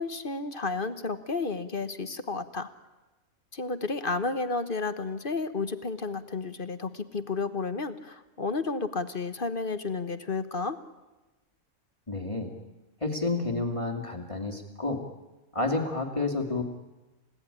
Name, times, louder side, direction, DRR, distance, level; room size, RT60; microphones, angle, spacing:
voice 1, 0.0-2.7 3.5-10.8, left 3 dB, 40° left, 11 dB, 1.3 m, -32 dB
voice 2, 12.1-12.5 13.0-15.0 15.5-16.6, left 2 dB, 20° left, 4 dB, 2.5 m, -30 dB
29.5 x 17.0 x 9.9 m, 1.1 s
omnidirectional pair, 1.4 m